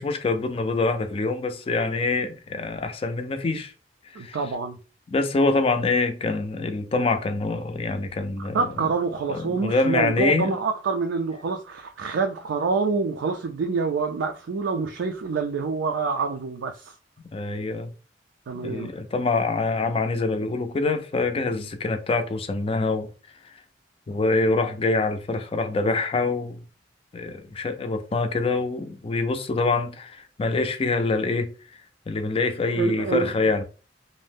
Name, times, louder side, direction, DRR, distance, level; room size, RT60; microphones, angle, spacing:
voice 1, 0.0-3.7 4.1-4.4 5.1-8.7 9.3-10.5 17.3-17.9 18.6-23.1 24.1-26.6 27.1-31.5 32.1-33.6, left 3 dB, 30° left, 0.4 m, -25 dB
voice 2, 4.2-4.8 8.5-16.9 18.5-18.9 32.7-33.6, right 4 dB, 85° right, 0.4 m, -27 dB
2.6 x 2.0 x 3.4 m
head